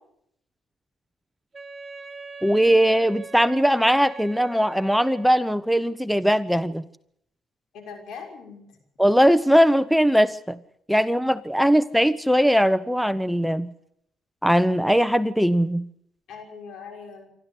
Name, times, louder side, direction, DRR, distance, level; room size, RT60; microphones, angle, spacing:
Wind instrument woodwind instrument, 1.5-5.6, right 3 dB, 25° right, 4.6 m, -41 dB
voice 1, 2.4-6.8 9.0-10.6 10.9-13.7 14.4-15.8, equal, ahead, 13 dB, 0.8 m, -20 dB
voice 2, 7.7-8.8 16.3-17.3, left 5 dB, 75° left, 4 dB, 6.1 m, -40 dB
27.0 x 13.0 x 8.3 m, 0.72 s
cardioid pair, 90°, 0 cm